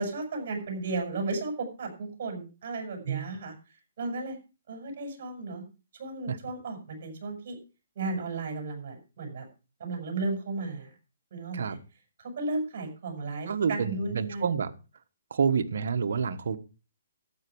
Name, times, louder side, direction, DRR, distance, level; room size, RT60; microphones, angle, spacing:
voice 1, 0.0-3.5 4.0-4.4 4.7-5.7 5.9-7.6 8.0-9.5 9.8-10.9 11.3-11.8 12.2-14.4, right 3 dB, 50° right, 4 dB, 6.1 m, -34 dB
voice 2, 13.5-14.7 15.3-16.6, right 6 dB, 65° right, 7 dB, 1.3 m, -28 dB
12.5 x 9.3 x 4.7 m, 0.32 s
hypercardioid pair, 160°, 0 cm